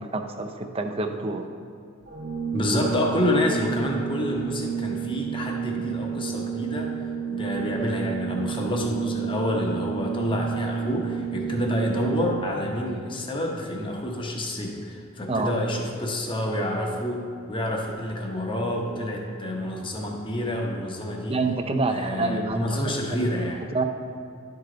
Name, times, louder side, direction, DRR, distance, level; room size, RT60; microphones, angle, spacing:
voice 1, 0.0-1.5 15.3-15.6 21.3-22.9 23.7-23.8, right 3 dB, 30° right, 5 dB, 0.5 m, -27 dB
Organ, 2.1-12.8, right 8 dB, 50° right, 0.9 m, -31 dB
voice 2, 2.5-21.4 21.9-23.6, left 1 dB, 25° left, 0 dB, 0.9 m, -28 dB
11.5 x 4.8 x 3.9 m, 2.5 s
head